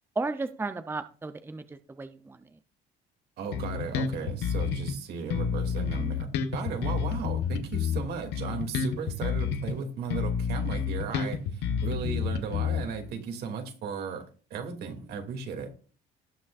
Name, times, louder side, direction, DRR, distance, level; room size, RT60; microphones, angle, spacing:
voice 1, 0.2-2.4, right 3 dB, 15° right, 10 dB, 0.6 m, -34 dB
voice 2, 3.4-14.2 14.5-15.7, right 6 dB, 75° right, 4 dB, 2.6 m, -36 dB
Bass guitar, 3.5-5.0 5.3-9.8 10.1-13.1, left 6 dB, 85° left, 1.3 m, -30 dB
18.5 x 6.3 x 2.5 m, 0.38 s
cardioid pair, 110°, 17 cm